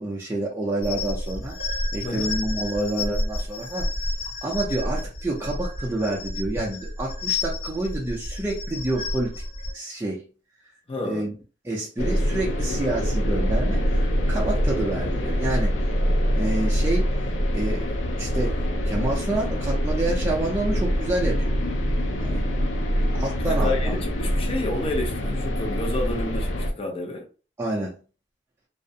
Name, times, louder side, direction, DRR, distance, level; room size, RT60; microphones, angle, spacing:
voice 1, 0.0-1.6 1.9-3.9 4.4-9.3 9.7-10.2 11.0-11.3 11.7-15.7 16.4-17.1 17.5-17.9 18.2-18.5 18.9-21.5 22.2-22.4 23.1-23.9 27.6-28.0, right 2 dB, 15° right, 0.4 m, -28 dB
sound 1, 0.8-9.7, left 2 dB, 55° left, 1.0 m, -30 dB
voice 2, 2.0-2.3 10.9-11.3 23.4-27.3, left 2 dB, 30° left, 0.6 m, -30 dB
sound 2, 12.0-26.7, equal, 85° left, 0.5 m, -24 dB
2.4 x 2.0 x 2.6 m
head